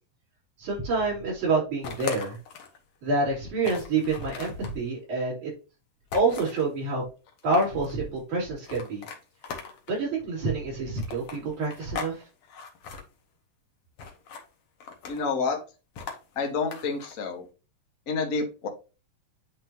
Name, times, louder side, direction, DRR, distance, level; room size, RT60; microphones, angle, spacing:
voice 1, 0.6-2.4 3.0-5.5 6.1-7.0 7.4-9.0 9.9-12.2, right 3 dB, 70° right, -6 dB, 5.1 m, -27 dB
sound 1, 1.8-2.8 3.2-3.3 3.6-4.8 6.1-6.7 7.3-7.9 8.6-10.0 11.0-12.2 12.4-13.0 14.0-14.5 14.8-15.3 16.0-17.1, left 6 dB, 60° left, 1.8 m, -39 dB
voice 2, 15.1-15.6 16.3-17.4 18.1-18.7, left 4 dB, 45° left, 1 dB, 1.1 m, -28 dB
9.6 x 3.4 x 2.9 m, 0.31 s
omnidirectional pair, 3.6 m